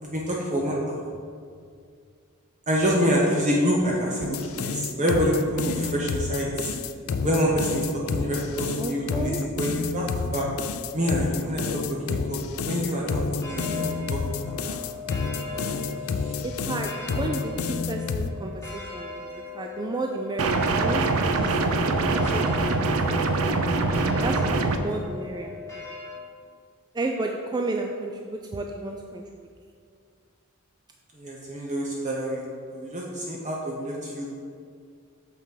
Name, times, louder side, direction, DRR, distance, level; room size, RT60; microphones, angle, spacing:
voice 1, 0.0-1.0 2.7-6.7 7.2-7.8 8.1-10.5 10.9-12.4 12.6-14.8 15.3-15.6 16.1-16.3 22.2-22.3 31.1-32.4 32.7-34.3, equal, 35° right, -3 dB, 0.8 m, -27 dB
sound 1, 4.2-18.3, left 5 dB, 75° left, 0.4 m, -29 dB
voice 2, 8.7-9.4 16.4-23.2 24.2-25.5 26.9-29.2, right 2 dB, 20° right, 2 dB, 0.3 m, -33 dB
sound 2, 13.4-26.2, left 4 dB, 15° left, 1.3 m, -39 dB
sound 3, 20.4-24.8, right 3 dB, 85° right, 0.6 m, -23 dB
6.8 x 5.8 x 4.8 m, 2.2 s
head